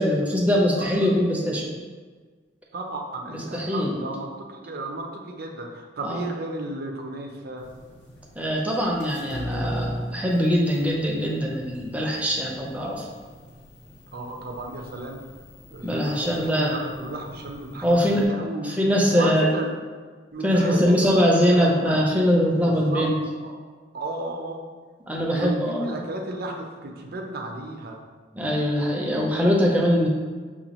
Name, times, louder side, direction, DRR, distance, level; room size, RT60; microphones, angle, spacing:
voice 1, 0.0-1.7 3.3-3.9 6.0-6.3 8.4-13.1 15.8-16.7 17.8-18.3 18.6-19.5 20.4-23.2 25.1-25.9 28.3-30.1, equal, 10° right, -2 dB, 0.5 m, -22 dB
voice 2, 0.8-1.1 2.7-7.6 14.1-15.2 15.7-18.8 19.1-19.8 20.3-20.9 21.2-22.0 22.6-23.1 23.4-23.7 23.9-24.6 25.3-28.0, right 2 dB, 50° right, 2 dB, 0.5 m, -33 dB
sound 1, 7.6-18.2, equal, 60° left, 0.7 m, -39 dB
6.2 x 2.3 x 2.9 m, 1.5 s
head